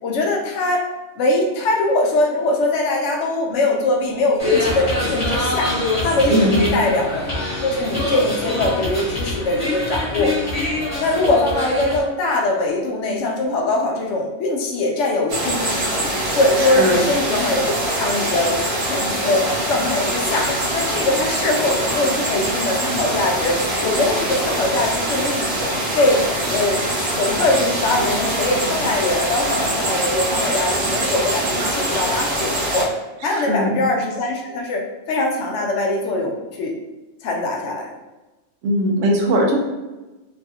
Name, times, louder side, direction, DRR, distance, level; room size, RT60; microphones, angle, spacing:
voice 1, 0.0-0.8 1.2-5.7 6.0-7.3 7.6-10.3 11.0-16.1 16.3-26.2 26.5-26.8 27.1-32.9 33.2-36.7 37.2-37.9, left 2 dB, 75° left, 1 dB, 0.9 m, -22 dB
sound 1, 4.4-12.0, left 2 dB, 30° left, 1.1 m, -24 dB
voice 2, 6.3-6.7 16.6-17.0 33.2-33.9 38.6-39.6, equal, 85° right, 1 dB, 1.0 m, -19 dB
sound 2, 15.3-32.8, right 1 dB, 60° right, 0.9 m, -23 dB
3.0 x 2.4 x 2.8 m, 1.1 s
omnidirectional pair, 1.3 m